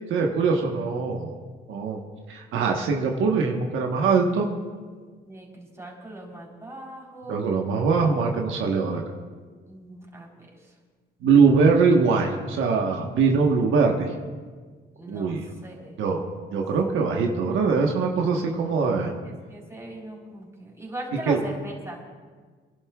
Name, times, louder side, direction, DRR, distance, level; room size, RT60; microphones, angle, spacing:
voice 1, 0.1-1.4 1.7-2.0 2.3-4.5 7.3-9.0 11.2-14.1 15.1-15.4 16.0-16.2 16.5-19.1 21.2-21.4, right 5 dB, 80° right, 1 dB, 1.2 m, -22 dB
voice 2, 4.9-7.5 9.7-10.5 14.9-16.0 16.5-16.6 19.0-22.0, right 1 dB, 15° right, -2 dB, 3.8 m, -40 dB
29.0 x 11.5 x 2.4 m, 1.5 s
cardioid pair, 90°, 20 cm